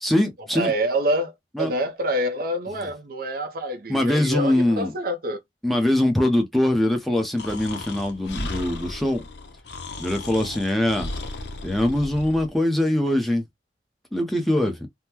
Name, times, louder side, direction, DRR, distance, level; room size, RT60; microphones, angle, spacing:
voice 1, 0.0-0.7 1.6-1.7 3.9-4.9 5.6-9.2 10.0-11.1 11.6-13.4 14.1-14.9, left 1 dB, ahead, 0.7 m, -22 dB
voice 2, 0.5-5.4 14.6-14.7, right 1 dB, 55° right, 0.6 m, -26 dB
Breathing, 7.4-12.5, left 2 dB, 75° left, 0.7 m, -35 dB
3.6 x 2.1 x 2.8 m
head